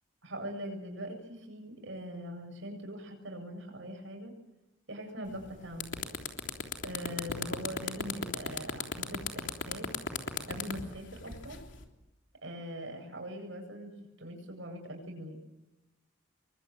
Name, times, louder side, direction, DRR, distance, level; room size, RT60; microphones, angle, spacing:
voice 1, 0.2-4.3 4.9-5.9 6.8-9.9 10.5-11.6 12.4-15.4, equal, 70° right, 4 dB, 7.9 m, -42 dB
sound 1, 5.3-5.4 5.7-11.8, left 5 dB, 65° left, 3.4 m, -35 dB
28.0 x 23.5 x 9.0 m, 0.96 s
head